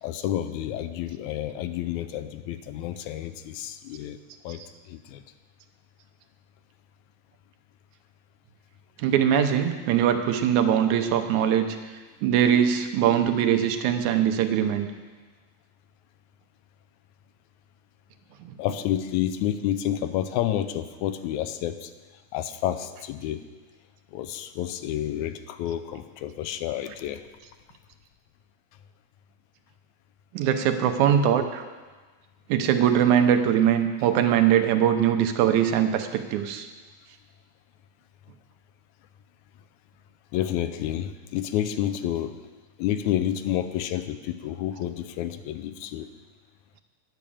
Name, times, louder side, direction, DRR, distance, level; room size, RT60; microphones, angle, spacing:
voice 1, 0.0-4.2 4.4-4.6 4.9-5.2 18.6-21.9 22.3-23.4 24.1-27.2 40.3-42.4 42.8-46.1, left 11 dB, 90° left, 11 dB, 2.0 m, -29 dB
voice 2, 9.0-11.8 12.2-14.9 18.4-18.6 30.3-31.6 32.5-36.7, right 9 dB, 90° right, 7 dB, 2.2 m, -22 dB
10.5 x 6.1 x 8.4 m, 1.3 s
omnidirectional pair, 3.3 m